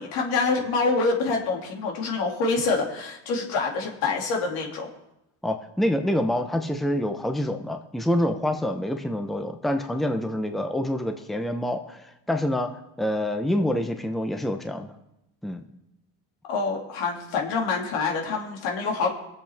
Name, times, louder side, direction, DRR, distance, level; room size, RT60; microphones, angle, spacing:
voice 1, 0.0-4.9 16.5-19.1, left 4 dB, 80° left, 0 dB, 2.7 m, -26 dB
voice 2, 5.4-12.7 13.0-14.9 15.4-15.6, left 1 dB, ahead, 6 dB, 0.8 m, -26 dB
22.5 x 7.7 x 3.6 m, 0.87 s
cardioid pair, 115°, 37 cm